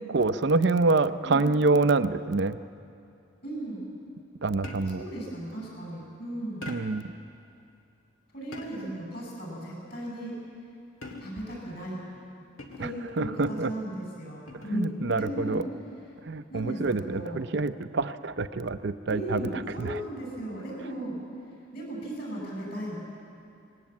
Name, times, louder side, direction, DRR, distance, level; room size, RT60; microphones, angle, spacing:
voice 1, 0.1-2.6 4.4-5.0 6.7-7.1 12.8-12.9 13.2-13.7 14.7-15.6 16.3-19.4 19.8-20.0, right 3 dB, 55° right, 12 dB, 0.6 m, -26 dB
voice 2, 3.4-3.9 4.9-6.7 8.3-10.3 11.2-12.0 12.8-15.6 16.5-17.4 19.1-21.2 21.7-23.0, right 1 dB, 50° left, -2 dB, 7.4 m, -36 dB
sound 1, 4.6-5.2 6.6-7.1 8.5-9.0 11.0-11.6 12.6-13.1 14.5-14.9, left 2 dB, 85° left, 2.0 m, -43 dB
20.0 x 18.0 x 8.5 m, 2.5 s
head